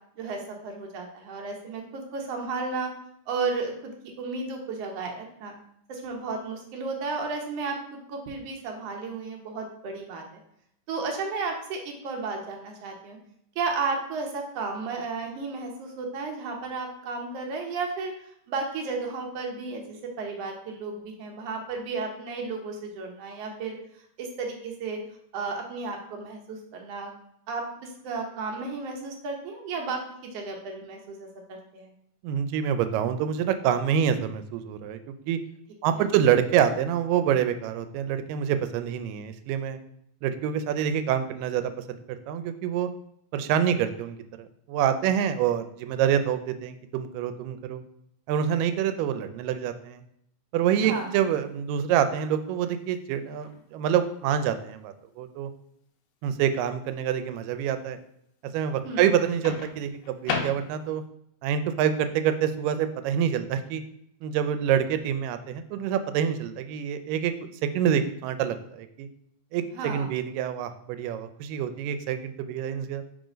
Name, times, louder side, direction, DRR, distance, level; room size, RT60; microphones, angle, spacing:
voice 1, 0.2-2.9 3.3-3.9 4.2-5.5 5.9-7.8 8.1-10.2 10.9-13.2 13.5-18.1 18.5-23.8 24.2-25.0 25.3-27.1 27.5-31.9 36.0-36.1 50.9-51.2 58.8-59.0 69.7-70.1, right 4 dB, 65° right, 1 dB, 1.6 m, -33 dB
voice 2, 32.2-35.0 35.3-35.4 35.8-39.8 40.2-42.9 43.3-47.8 48.3-50.0 50.5-55.5 56.2-58.0 58.5-61.0 61.4-63.8 64.2-67.3 67.6-69.1 69.5-73.0, right 9 dB, 85° right, 10 dB, 2.2 m, -26 dB
Microwave oven, 50.7-51.4 53.4-53.6 59.4-61.1, left 5 dB, 80° left, 1.9 m, -35 dB
5.0 x 3.8 x 5.0 m, 0.74 s
omnidirectional pair, 3.8 m